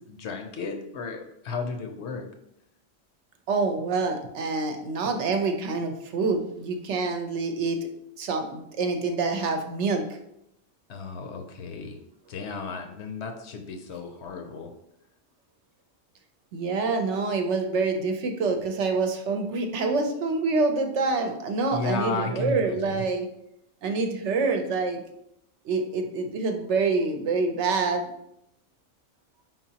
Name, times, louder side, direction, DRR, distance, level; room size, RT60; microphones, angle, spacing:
voice 1, 0.1-2.3 10.9-12.0 12.3-14.7 21.7-23.0, left 4 dB, 65° left, 4 dB, 0.9 m, -33 dB
voice 2, 3.5-7.8 8.2-10.0 16.5-23.3 23.8-25.0 25.6-28.1, right 4 dB, 70° right, 4 dB, 0.9 m, -26 dB
4.6 x 3.9 x 2.8 m, 0.79 s
omnidirectional pair, 1.3 m